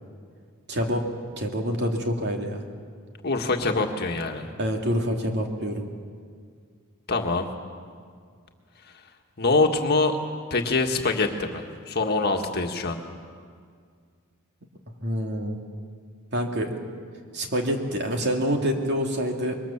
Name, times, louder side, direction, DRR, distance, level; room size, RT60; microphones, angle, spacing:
voice 1, 0.7-1.1 1.4-2.6 4.6-5.9 15.0-15.6 16.3-16.7 17.3-19.6, equal, 50° right, 2 dB, 2.7 m, -26 dB
voice 2, 3.2-4.5 7.1-7.5 9.4-10.2 10.5-13.0, left 3 dB, 50° left, 3 dB, 1.8 m, -24 dB
26.0 x 23.0 x 7.3 m, 2.1 s
head